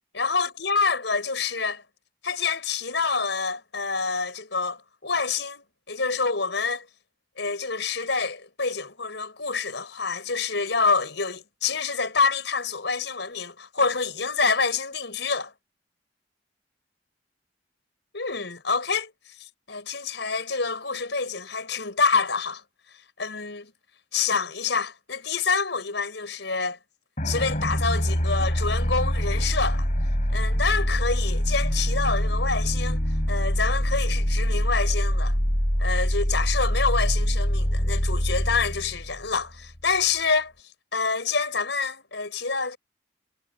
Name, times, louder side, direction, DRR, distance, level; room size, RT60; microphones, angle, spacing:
voice 1, 0.1-1.8 2.2-6.9 7.4-15.5 18.1-19.1 19.4-22.6 23.2-23.7 24.1-26.8 27.2-29.9 30.3-33.0 33.3-35.4 35.8-40.5 40.9-42.8, left 4 dB, 70° left, 5.9 m, -27 dB
sound 1, 27.2-39.9, equal, 45° left, 7.5 m, -24 dB
head